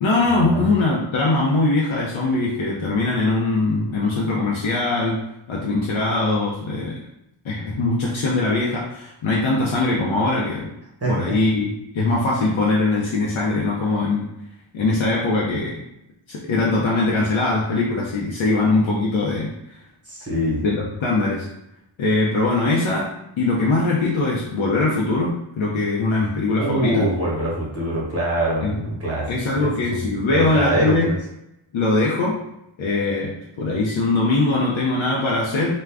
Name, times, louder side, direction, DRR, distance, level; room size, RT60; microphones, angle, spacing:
voice 1, 0.0-7.0 7.4-10.7 11.1-14.3 14.7-15.8 16.3-19.8 20.6-21.5 22.0-27.1 28.6-28.8 29.3-31.1 31.7-32.4 32.8-35.7, left 2 dB, 70° left, -4 dB, 0.6 m, -21 dB
voice 2, 11.0-11.4 20.1-20.6 26.6-31.2, right 1 dB, 30° right, -4 dB, 0.9 m, -24 dB
2.4 x 2.1 x 3.3 m, 0.85 s
wide cardioid pair, 130°, 48 cm